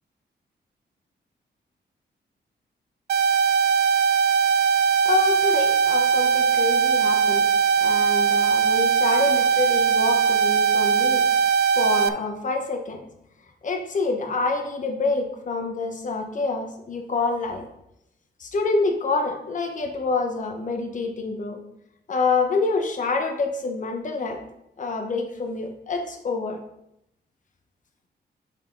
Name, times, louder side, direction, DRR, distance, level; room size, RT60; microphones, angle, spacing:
sound 1, 3.1-12.1, right 6 dB, 70° right, 0.4 m, -20 dB
voice 1, 5.0-7.5 7.8-11.2 11.7-13.0 13.6-17.6 18.4-21.6 22.1-24.4 24.8-26.6, left 3 dB, 45° left, 3 dB, 1.1 m, -27 dB
6.5 x 5.7 x 3.9 m, 0.81 s
wide cardioid pair, 160°, 18 cm